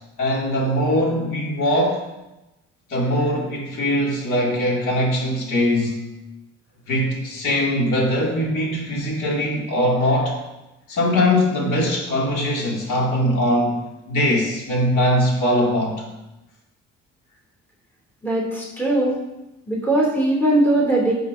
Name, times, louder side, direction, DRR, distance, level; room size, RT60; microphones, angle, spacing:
voice 1, 0.2-2.0 2.9-6.0 6.9-10.4 10.9-13.8 14.1-16.0, left 1 dB, 80° left, -3 dB, 2.8 m, -21 dB
voice 2, 18.2-19.2 19.7-21.1, right 1 dB, 5° left, -5 dB, 3.0 m, -20 dB
11.5 x 7.8 x 2.8 m, 1.0 s
cardioid pair, 90°, 30 cm